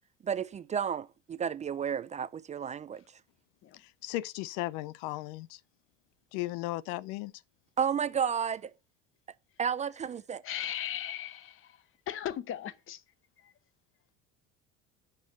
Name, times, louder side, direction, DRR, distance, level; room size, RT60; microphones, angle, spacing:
voice 1, 0.2-3.0 7.8-8.7 9.6-10.4, right 7 dB, 25° right, 0.4 m, -32 dB
voice 2, 3.7-5.6 6.3-7.3, left 17 dB, 70° left, 0.5 m, -36 dB
voice 3, 10.4-13.0 13.4-13.5, left 11 dB, 45° left, 0.9 m, -38 dB
9.2 x 5.4 x 5.4 m
supercardioid pair, 105°, 30 cm